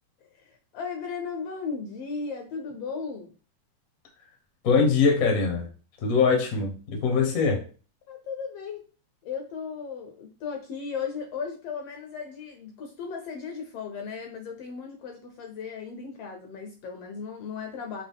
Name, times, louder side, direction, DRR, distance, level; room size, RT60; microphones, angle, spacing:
voice 1, 0.4-3.3 8.1-8.8 9.2-18.0, left 5 dB, 70° left, 3 dB, 1.5 m, -36 dB
voice 2, 4.6-5.7 6.0-7.6, left 5 dB, 55° left, 2 dB, 0.9 m, -22 dB
5.9 x 2.5 x 3.6 m, 0.36 s
omnidirectional pair, 3.3 m